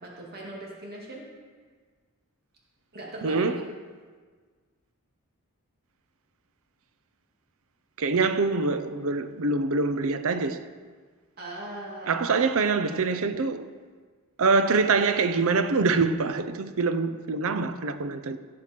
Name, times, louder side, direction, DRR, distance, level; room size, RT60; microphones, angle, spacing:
voice 1, 0.0-1.3 2.9-3.5 11.4-12.3, right 1 dB, 45° right, 2.4 m, -39 dB
voice 2, 3.2-3.6 8.0-10.6 12.0-13.6 14.4-18.4, right 4 dB, 65° right, 0.6 m, -25 dB
17.0 x 7.7 x 4.5 m
head